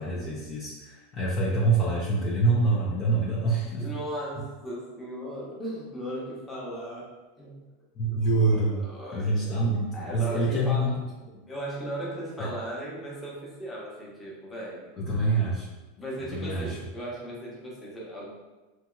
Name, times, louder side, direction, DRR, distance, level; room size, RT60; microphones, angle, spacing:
voice 1, 0.0-4.0 8.0-8.8 9.1-10.9 12.4-12.5 15.0-15.7 16.3-16.8, right 2 dB, 40° left, -5 dB, 0.5 m, -26 dB
voice 2, 3.7-7.7 8.1-9.5 9.9-10.9 11.5-14.9 16.0-18.3, equal, 15° left, -5 dB, 0.9 m, -37 dB
2.8 x 2.7 x 2.3 m, 1.2 s
hypercardioid pair, 115°, 0 cm